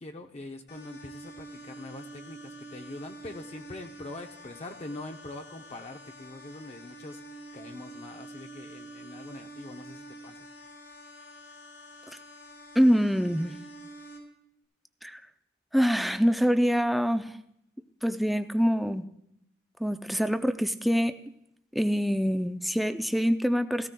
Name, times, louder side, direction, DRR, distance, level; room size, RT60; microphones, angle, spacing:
voice 1, 0.0-7.2 7.5-10.4, left 2 dB, 35° left, 4 dB, 0.6 m, -43 dB
sound 1, 0.7-14.2, right 1 dB, 80° left, 4.1 m, -47 dB
voice 2, 12.8-13.6 15.0-15.2 15.7-17.4 18.0-19.1 19.8-21.2 21.7-23.9, equal, ahead, 8 dB, 0.4 m, -25 dB
17.0 x 14.5 x 2.2 m, 0.78 s
head